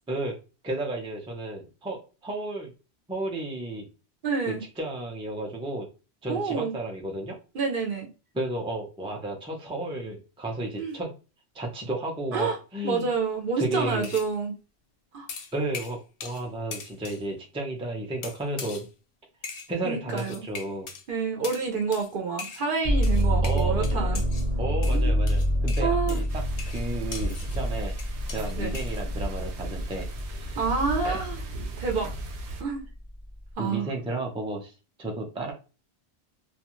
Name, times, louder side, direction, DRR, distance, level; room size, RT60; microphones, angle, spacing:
voice 1, 0.6-2.7 3.1-3.9 4.5-5.9 6.2-7.4 8.3-11.1 11.5-13.1 13.6-14.1 15.5-18.9 19.7-20.9 23.4-24.2 24.6-26.4 26.7-27.9 28.3-30.6 31.0-31.2 33.6-34.7 35.0-35.5, right 2 dB, 10° right, 0.4 m, -33 dB
voice 2, 4.2-4.6 6.3-6.7 7.5-8.1 10.8-11.0 12.3-12.6 12.8-14.5 15.1-15.3 19.8-20.4 21.1-24.2 24.9-25.3 25.8-26.2 28.6-28.7 30.5-31.4 31.8-32.1 32.6-32.9 33.6-33.9, right 5 dB, 60° right, 0.7 m, -28 dB
sound 1, 14.0-14.3 15.3-16.5 16.7-17.2 18.2-18.9 19.4-19.7 20.2-21.0 21.4-21.7 21.9-22.1 22.4-22.7 23.0-24.5 24.8-27.6 28.0-29.0, left 5 dB, 65° left, 0.7 m, -40 dB
sound 2, 22.8-30.7 31.1-31.9, equal, 35° right, 0.8 m, -27 dB
sound 3, 26.3-32.6, right 1 dB, 85° right, 1.0 m, -36 dB
2.4 x 2.2 x 3.0 m
omnidirectional pair, 1.1 m